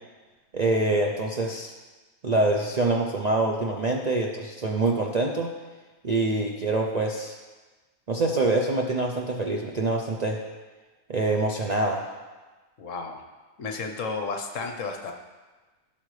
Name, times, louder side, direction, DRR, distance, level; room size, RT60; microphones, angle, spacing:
voice 1, 0.5-1.7 2.2-5.5 6.0-7.4 8.1-10.4 11.1-12.1, right 2 dB, 55° right, 0 dB, 0.4 m, -25 dB
voice 2, 12.8-13.2 13.6-15.1, left 4 dB, 65° left, 3 dB, 1.2 m, -32 dB
14.5 x 5.9 x 3.2 m, 1.3 s
omnidirectional pair, 1.5 m